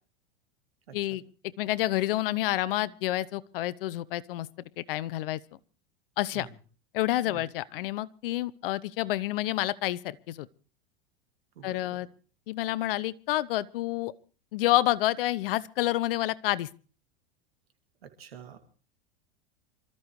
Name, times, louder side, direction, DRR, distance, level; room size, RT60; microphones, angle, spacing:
voice 1, 0.9-1.2 6.3-6.5 7.3-7.4 11.6-12.0 18.0-18.6, right 8 dB, 80° right, 6 dB, 2.6 m, -47 dB
voice 2, 1.6-4.5 4.8-5.4 6.2-6.5 6.9-10.5 11.6-12.1 12.5-14.1 14.5-16.7, left 15 dB, 65° left, 21 dB, 0.8 m, -29 dB
26.5 x 13.5 x 3.2 m, 0.38 s
hypercardioid pair, 100°, 30 cm